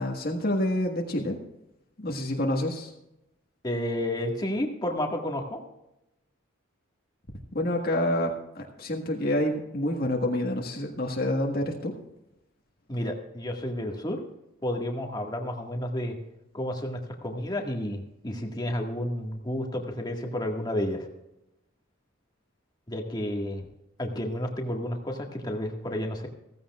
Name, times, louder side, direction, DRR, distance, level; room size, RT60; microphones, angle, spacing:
voice 1, 0.0-1.4 2.0-2.9 7.5-11.9, left 1 dB, 50° left, 1 dB, 1.6 m, -28 dB
voice 2, 3.6-5.6 12.9-14.2 14.6-16.2 16.5-21.1 22.9-23.6 24.0-26.3, left 1 dB, 20° left, 1 dB, 1.8 m, -31 dB
16.0 x 15.5 x 2.5 m, 0.89 s
head